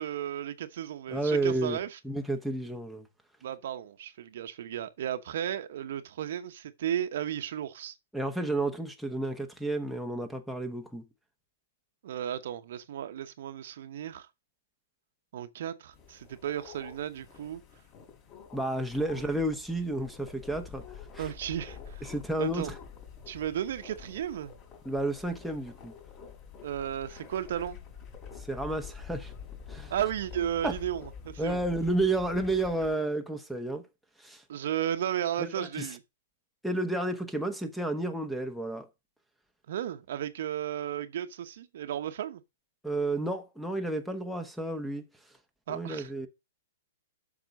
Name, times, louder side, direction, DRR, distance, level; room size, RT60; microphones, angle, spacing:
voice 1, 0.0-2.0 3.4-7.9 12.0-14.3 15.3-17.6 19.1-19.3 21.2-22.1 22.4-22.7 23.3-24.5 26.6-27.8 29.9-31.6 34.5-36.0 39.7-42.4 45.7-46.1, right 10 dB, 60° right, 1.0 m, -34 dB
voice 2, 1.1-1.8 2.0-3.1 8.1-11.0 18.5-20.8 21.1-21.3 22.0-22.7 24.8-25.9 28.5-29.3 29.7-29.9 30.6-30.7 31.4-33.8 34.2-34.4 35.4-35.9 36.6-38.9 42.8-45.0 45.7-46.3, right 2 dB, ahead, 1.1 m, -31 dB
sound 1, 15.9-33.0, left 7 dB, 30° left, 3.9 m, -47 dB
7.6 x 6.0 x 5.2 m
hypercardioid pair, 150°, 0 cm